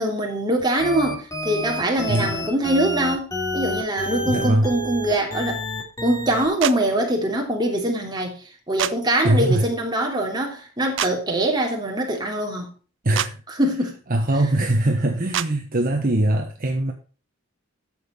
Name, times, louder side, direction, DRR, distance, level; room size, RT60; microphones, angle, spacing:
voice 1, 0.0-5.6 6.0-8.4 8.7-12.7 13.5-14.0, right 1 dB, 20° right, 3.2 m, -23 dB
sound 1, 0.8-6.5, equal, 15° left, 3.5 m, -29 dB
voice 2, 4.2-4.7 9.2-9.7 13.0-13.4 14.1-16.9, right 1 dB, 45° right, 1.3 m, -21 dB
sound 2, 6.6-6.8 8.8-8.9 11.0-11.1 13.1-13.3 15.3-15.5, right 10 dB, 65° right, 0.6 m, -24 dB
12.0 x 7.7 x 4.5 m
head